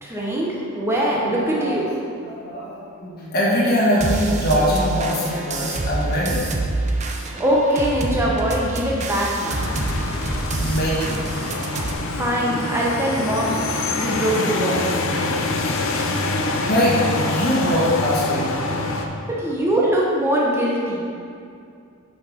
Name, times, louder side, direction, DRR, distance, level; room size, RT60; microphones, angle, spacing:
voice 1, 0.0-1.9 7.4-9.6 12.0-13.6 13.9-14.9 19.3-21.1, right 1 dB, 10° right, -5 dB, 1.0 m, -22 dB
voice 2, 1.1-1.8 2.2-6.5 10.6-11.6 16.1-17.0 17.3-19.3, equal, 45° left, -7 dB, 1.6 m, -23 dB
sound 1, 4.0-11.9, right 2 dB, 30° right, 0.6 m, -27 dB
sound 2, 9.5-19.1, left 2 dB, 65° left, 0.7 m, -25 dB
7.9 x 5.8 x 5.1 m, 2.5 s
head